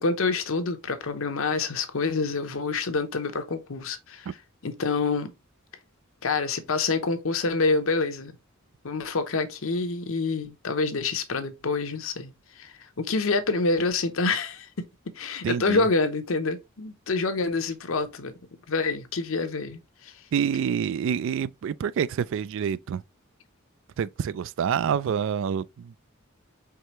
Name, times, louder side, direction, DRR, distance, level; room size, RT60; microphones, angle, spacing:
voice 1, 0.0-4.3 4.6-5.3 6.2-8.3 8.8-14.7 15.1-18.3 18.7-20.1, left 3 dB, 70° left, 0.8 m, -27 dB
voice 2, 15.4-15.9 20.3-23.0 24.0-25.9, right 7 dB, 65° right, 0.3 m, -27 dB
4.7 x 3.3 x 3.0 m
head